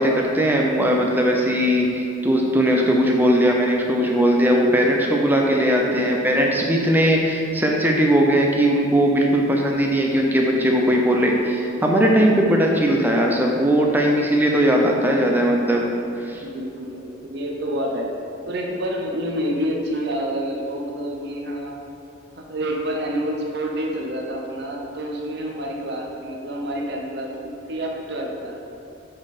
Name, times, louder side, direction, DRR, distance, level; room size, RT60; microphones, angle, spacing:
voice 1, 0.0-15.9 16.2-16.4, equal, 10° right, 0 dB, 0.6 m, -19 dB
voice 2, 5.8-6.2 16.3-18.1 18.5-21.8 22.4-28.8, equal, 55° right, 0 dB, 0.8 m, -28 dB
7.7 x 4.2 x 4.2 m, 2.8 s
head